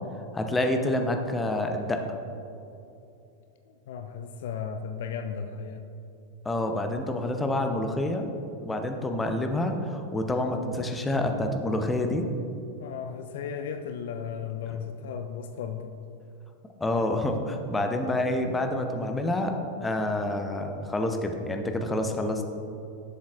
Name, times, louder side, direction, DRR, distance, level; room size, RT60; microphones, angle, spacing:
voice 1, 0.3-2.2 6.4-8.2 8.6-12.3 14.7-14.8 16.8-19.5 19.8-22.4, left 1 dB, 10° left, 5 dB, 0.7 m, -28 dB
voice 2, 3.7-5.8 12.8-15.9, left 7 dB, 55° left, 7 dB, 0.4 m, -35 dB
11.0 x 7.3 x 2.5 m, 2.7 s
figure-of-eight pair, 90°, 0 cm